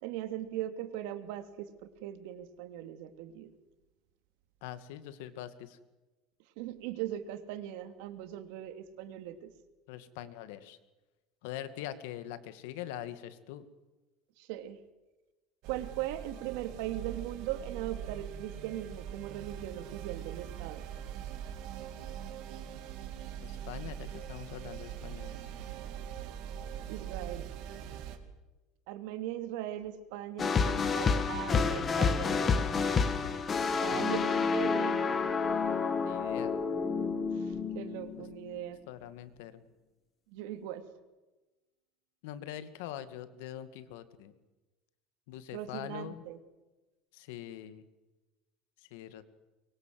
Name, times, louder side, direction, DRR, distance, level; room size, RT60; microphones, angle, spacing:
voice 1, 0.0-3.5 6.6-9.5 14.4-14.8 15.7-20.8 26.9-27.5 28.9-32.7 33.8-35.1 37.3-38.8 40.3-40.9 45.5-46.4, right 12 dB, 75° right, 10 dB, 2.6 m, -39 dB
voice 2, 4.6-5.8 9.9-10.8 11.4-13.6 23.4-25.5 33.9-34.3 36.0-36.5 38.9-39.6 42.2-44.3 45.3-46.2 47.1-47.8 48.9-49.2, left 11 dB, 85° left, 12 dB, 2.2 m, -43 dB
sound 1, 15.6-28.2, right 10 dB, 55° right, 2.7 m, -42 dB
sound 2, 30.4-38.6, left 5 dB, 20° left, 1.9 m, -29 dB
24.0 x 23.5 x 7.8 m, 1.1 s
cardioid pair, 165°, 0 cm